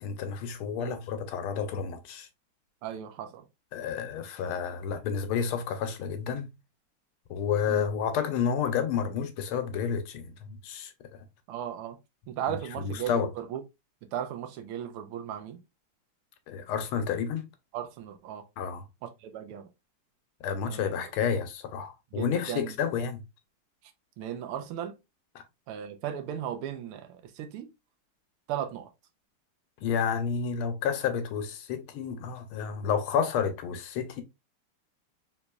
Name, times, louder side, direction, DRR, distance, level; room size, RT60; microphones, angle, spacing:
voice 1, 0.0-2.3 3.7-6.5 7.3-11.2 12.5-13.3 16.5-17.5 18.6-18.8 20.4-23.2 25.3-25.4 29.8-34.2, left 7 dB, 80° left, 1.5 m, -30 dB
voice 2, 2.8-3.4 7.7-7.8 11.5-12.0 12.3-13.6 14.1-15.6 17.7-18.5 19.2-19.7 20.7-20.9 21.2-21.3 22.1-22.7 24.2-25.0 25.7-27.7 28.5-28.9, right 10 dB, 85° right, 1.5 m, -36 dB
4.0 x 3.0 x 2.2 m
omnidirectional pair, 2.4 m